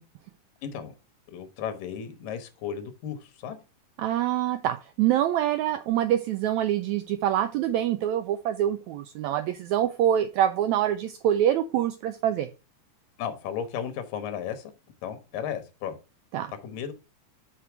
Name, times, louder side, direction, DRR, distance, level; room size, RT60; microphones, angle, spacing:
voice 1, 0.6-0.9 1.3-3.6 13.2-14.7 15.0-16.0 16.6-16.9, left 8 dB, 80° left, 2.8 m, -34 dB
voice 2, 4.0-12.5 16.3-16.5, right 11 dB, 90° right, 1.6 m, -25 dB
6.7 x 6.0 x 4.6 m
omnidirectional pair, 3.9 m